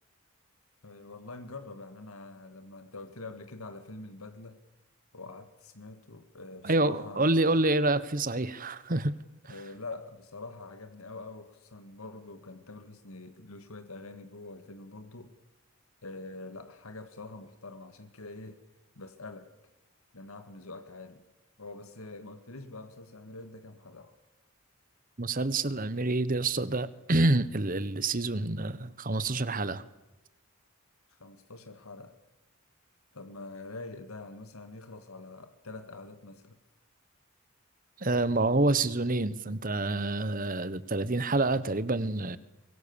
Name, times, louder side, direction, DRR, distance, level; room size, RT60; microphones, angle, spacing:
voice 1, 0.8-4.6 5.1-7.5 9.5-15.4 16.0-18.6 19.0-19.5 20.1-21.2 21.6-24.1 31.2-32.2 33.1-36.6, left 3 dB, 80° left, 2.0 m, -45 dB
voice 2, 6.6-9.1 25.2-29.8 38.0-42.4, right 2 dB, 40° right, 1.3 m, -27 dB
25.0 x 22.0 x 7.2 m
head